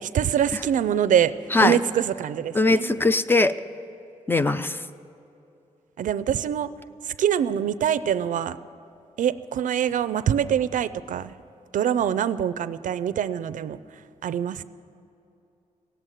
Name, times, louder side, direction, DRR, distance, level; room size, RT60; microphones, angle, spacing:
voice 1, 0.0-1.3 1.6-3.1 6.0-6.7 7.0-8.6 9.2-11.3 11.7-13.8 14.2-14.6, right 9 dB, 85° right, 16 dB, 0.4 m, -24 dB
voice 2, 2.5-3.5 4.3-4.8, left 2 dB, 15° left, 12 dB, 0.4 m, -20 dB
17.0 x 8.0 x 9.1 m, 2.7 s
wide cardioid pair, 140°, 13 cm